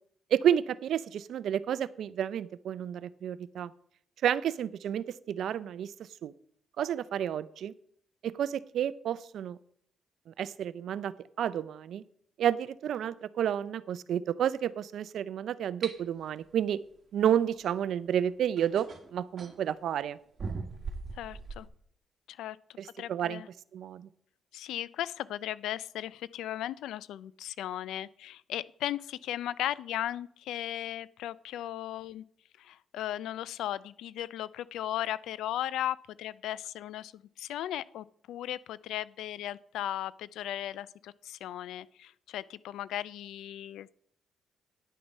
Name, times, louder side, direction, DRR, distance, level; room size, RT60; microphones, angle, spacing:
voice 1, 0.3-3.7 4.2-6.3 6.8-7.7 8.2-9.6 10.3-12.0 12.4-16.8 17.1-20.2 22.8-23.4 23.7-24.1, right 9 dB, 75° right, 18 dB, 0.5 m, -31 dB
sound 1, 15.8-16.0 17.8-17.9 18.6-19.6 20.4-21.7, right 4 dB, 45° right, 1.5 m, -39 dB
voice 2, 21.1-21.7 22.3-22.6 23.0-23.5 24.5-32.2 32.6-44.0, left 12 dB, 85° left, 20 dB, 0.3 m, -36 dB
10.5 x 6.8 x 5.4 m, 0.64 s
cardioid pair, 70°, 0 cm